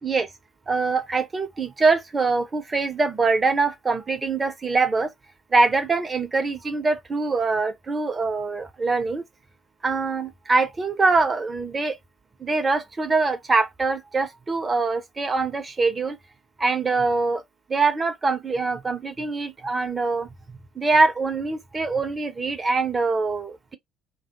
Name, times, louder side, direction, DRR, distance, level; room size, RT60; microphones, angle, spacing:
voice 1, 0.7-5.1 5.5-9.2 9.8-12.0 12.4-16.2 16.6-17.4 17.7-20.3 20.8-23.8, right 3 dB, 25° right, 0.7 m, -23 dB
2.3 x 2.0 x 2.9 m
figure-of-eight pair, 50°, 0 cm